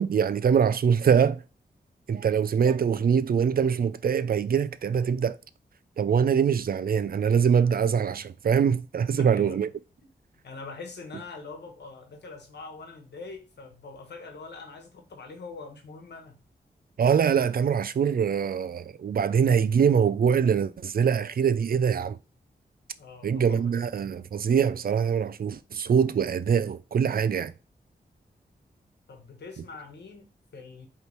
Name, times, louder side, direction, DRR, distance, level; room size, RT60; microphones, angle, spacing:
voice 1, 0.0-1.4 2.1-5.4 6.0-9.7 17.0-22.2 23.2-27.5, right 7 dB, 60° right, 0.4 m, -23 dB
voice 2, 9.1-9.6 10.4-16.4 23.0-23.8 29.1-30.9, left 4 dB, 90° left, 1.2 m, -43 dB
5.1 x 3.2 x 3.1 m
cardioid pair, 60°, 17 cm